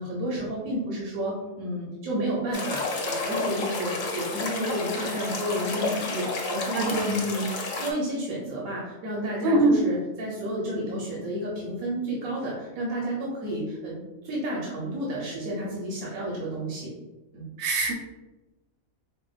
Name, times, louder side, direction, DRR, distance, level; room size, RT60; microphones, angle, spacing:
voice 1, 0.0-7.5 7.8-14.0 14.2-16.9 17.3-17.5, right 1 dB, 85° right, -5 dB, 1.2 m, -31 dB
sound 1, 2.5-7.9, left 3 dB, 80° left, 1.1 m, -31 dB
voice 2, 6.7-7.2 9.4-9.8 17.6-17.9, right 2 dB, 60° right, 1 dB, 0.8 m, -22 dB
4.7 x 2.2 x 2.4 m, 1.1 s
omnidirectional pair, 1.4 m